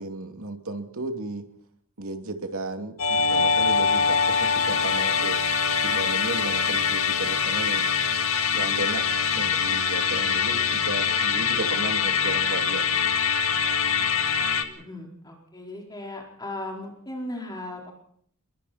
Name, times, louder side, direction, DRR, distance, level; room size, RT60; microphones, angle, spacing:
voice 1, 0.0-1.4 2.0-5.4 5.8-7.9 8.5-9.1 9.3-13.0, right 2 dB, 70° right, 4 dB, 2.8 m, -34 dB
Musical instrument, 3.0-14.6, left 6 dB, 70° left, 2.0 m, -24 dB
voice 2, 14.8-17.9, left 1 dB, 20° left, 0 dB, 4.5 m, -37 dB
28.0 x 22.5 x 4.4 m, 0.65 s
head